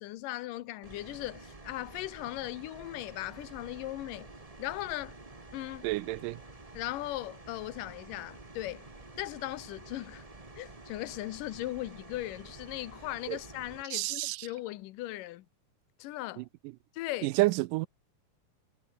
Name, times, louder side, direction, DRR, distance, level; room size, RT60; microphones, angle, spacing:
voice 1, 0.0-4.3 4.6-5.2 5.5-5.8 6.7-8.9 9.2-10.2 10.6-15.5 16.0-16.5 16.9-17.3, left 16 dB, 85° left, 2.5 m, -38 dB
sound 1, 0.8-13.8, right 2 dB, 15° right, 1.3 m, -50 dB
voice 2, 5.8-6.4 13.3-13.4 13.9-14.5 16.4-16.5 17.2-17.9, right 20 dB, 90° right, 2.2 m, -29 dB
omnidirectional pair, 3.7 m